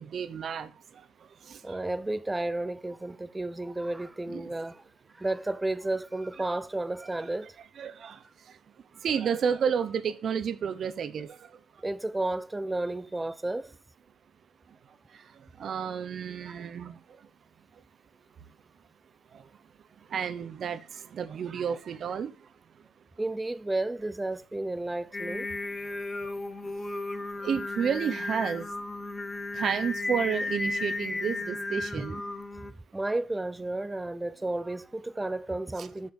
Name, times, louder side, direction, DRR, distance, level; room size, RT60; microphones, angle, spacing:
voice 1, 0.0-1.8 4.3-4.5 7.8-8.6 8.9-11.6 15.1-17.3 19.3-19.5 20.0-22.5 26.6-26.8 27.4-28.7 29.5-32.3, right 7 dB, 55° right, 0.9 m, -32 dB
voice 2, 1.6-4.8 5.1-7.6 11.8-13.7 23.2-25.5 31.9-32.1 32.6-32.7 32.9-36.1, right 2 dB, 15° right, 0.7 m, -32 dB
Singing, 25.1-32.7, left 2 dB, 20° left, 1.1 m, -34 dB
6.7 x 6.7 x 6.6 m
supercardioid pair, 65°, 0 cm